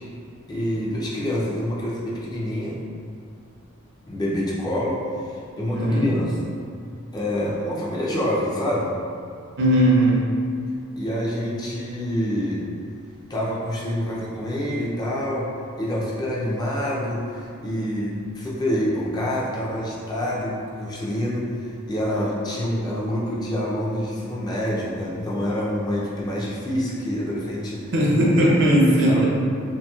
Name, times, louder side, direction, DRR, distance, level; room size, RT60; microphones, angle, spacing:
voice 1, 0.5-2.8 4.1-6.5 7.1-9.0 11.0-12.7 13.3-15.5 15.8-27.9 28.4-28.5 29.1-29.2, equal, 20° left, -5 dB, 0.3 m, -27 dB
voice 2, 5.7-6.1 9.6-10.3 27.9-29.2, right 1 dB, 60° right, -4 dB, 0.6 m, -18 dB
2.8 x 2.6 x 2.2 m, 2.3 s
head